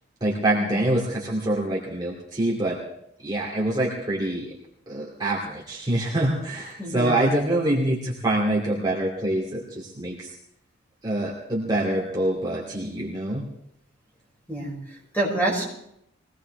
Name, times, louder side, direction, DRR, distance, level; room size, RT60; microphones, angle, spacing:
voice 1, 0.2-2.8 3.2-4.5 4.9-10.3 11.0-13.5, right 1 dB, 20° right, -4 dB, 2.4 m, -25 dB
voice 2, 6.8-7.5 14.5-15.6, right 1 dB, 10° left, -3 dB, 5.2 m, -28 dB
22.5 x 17.5 x 3.3 m, 0.75 s
head